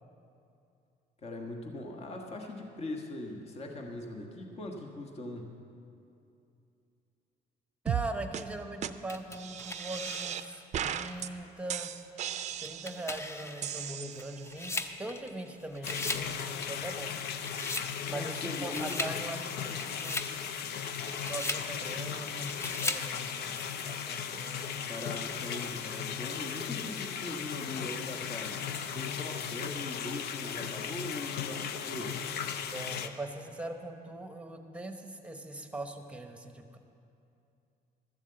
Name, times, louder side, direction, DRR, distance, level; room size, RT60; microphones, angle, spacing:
voice 1, 1.2-5.5 18.0-19.1 24.9-28.6 28.9-32.2, left 2 dB, 40° left, 2 dB, 1.3 m, -41 dB
voice 2, 7.8-11.9 12.6-17.1 18.1-20.4 21.3-25.0 32.7-36.8, right 2 dB, 5° right, 5 dB, 1.0 m, -41 dB
sound 1, 7.9-8.1 8.3-8.4 8.8-8.9 9.4-10.4 10.7-11.3 11.7-13.1 13.6-14.6, right 9 dB, 45° right, 0.5 m, -36 dB
sound 2, 9.1-10.6 11.2-11.3 12.5-15.5 15.7-16.3 16.6-17.9 18.4-19.2 19.6-20.3 20.9-21.7 22.4-23.1, left 2 dB, 15° left, 0.6 m, -38 dB
sound 3, 15.8-33.1, left 8 dB, 75° left, 0.7 m, -37 dB
13.0 x 7.3 x 7.8 m, 2.6 s
cardioid pair, 110°, 17 cm